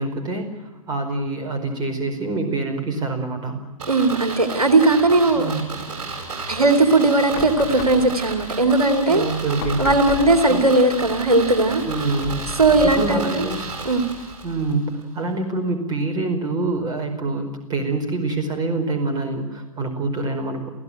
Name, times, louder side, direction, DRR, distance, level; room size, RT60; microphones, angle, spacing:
voice 1, 0.0-3.6 5.3-5.7 9.1-9.9 10.5-10.6 11.8-12.5 12.8-13.6 14.4-20.7, right 3 dB, 20° right, 5 dB, 4.9 m, -26 dB
sound 1, 3.8-14.7 15.0-15.1, right 4 dB, 55° right, 7.9 m, -33 dB
voice 2, 3.9-5.5 6.5-9.2 9.8-11.8 12.6-13.5 13.8-14.0, right 2 dB, 80° right, 6 dB, 2.7 m, -18 dB
sound 2, 7.3-14.8, left 10 dB, 45° left, 3.1 m, -37 dB
28.5 x 16.0 x 9.1 m, 1.1 s
figure-of-eight pair, 110°, 19 cm